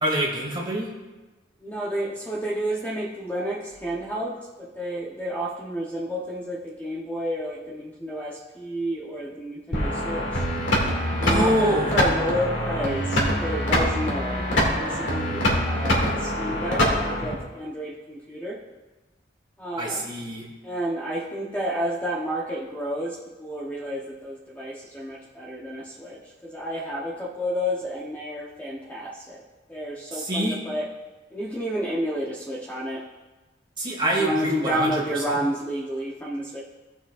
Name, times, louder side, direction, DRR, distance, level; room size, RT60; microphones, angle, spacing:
voice 1, 0.0-0.9 11.2-11.9 19.8-20.5 30.1-30.6 33.8-35.4, equal, 25° right, -3 dB, 2.1 m, -25 dB
voice 2, 1.6-10.4 11.2-18.6 19.6-20.0 20.6-29.4 29.7-30.9 31.3-33.0 34.1-36.6, equal, 10° left, -4 dB, 0.8 m, -30 dB
sound 1, 9.7-17.3, equal, 85° left, 2.2 m, -24 dB
17.0 x 5.9 x 2.4 m, 1.2 s
head